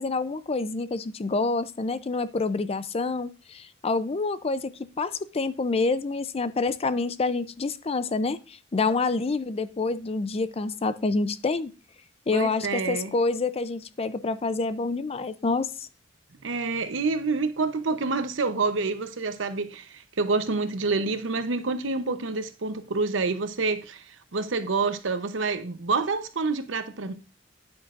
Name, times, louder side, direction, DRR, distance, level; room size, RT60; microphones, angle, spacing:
voice 1, 0.0-4.7 5.0-11.7 12.3-15.9, left 3 dB, 30° left, 0.5 m, -27 dB
voice 2, 12.3-13.1 16.4-27.1, right 3 dB, 85° right, 0.8 m, -28 dB
9.6 x 8.4 x 2.5 m
head